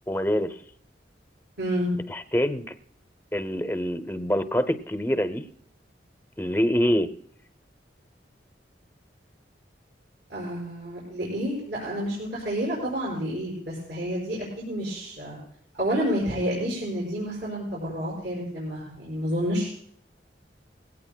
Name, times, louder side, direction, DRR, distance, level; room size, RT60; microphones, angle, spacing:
voice 1, 0.1-0.6 2.1-2.7 3.3-5.4 6.4-7.1, equal, 10° left, 11 dB, 0.6 m, -25 dB
voice 2, 1.6-1.9 10.3-15.4 15.8-19.7, equal, 75° right, -4 dB, 5.5 m, -29 dB
21.0 x 17.5 x 2.2 m, 0.62 s
head